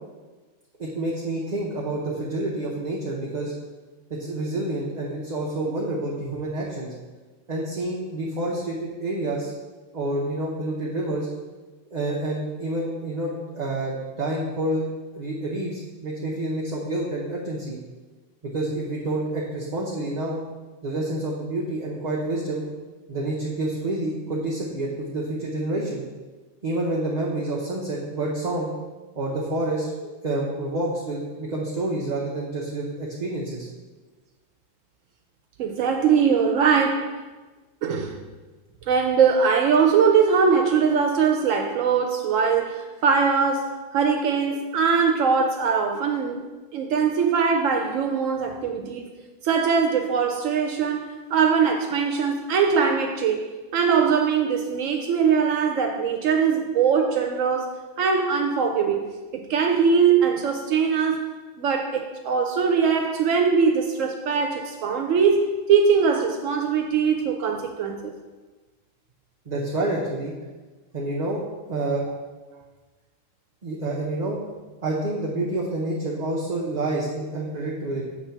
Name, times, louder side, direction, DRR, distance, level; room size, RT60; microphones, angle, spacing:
voice 1, 0.8-3.5 4.2-6.9 7.5-9.5 9.9-11.3 11.9-14.8 15.1-17.8 18.5-20.4 20.8-22.6 23.1-26.0 26.6-28.7 29.2-29.9 30.2-33.7 69.5-70.3 70.9-71.4 71.7-72.0 73.6-74.4 74.8-78.1, right 2 dB, 40° right, -4 dB, 0.9 m, -28 dB
voice 2, 35.6-37.2 37.8-38.2 38.9-46.4 46.7-49.1 49.4-53.5 53.7-59.1 59.3-61.3 61.6-68.1, right 6 dB, 80° right, 3 dB, 1.0 m, -21 dB
7.3 x 3.3 x 5.7 m, 1.3 s
omnidirectional pair, 1.3 m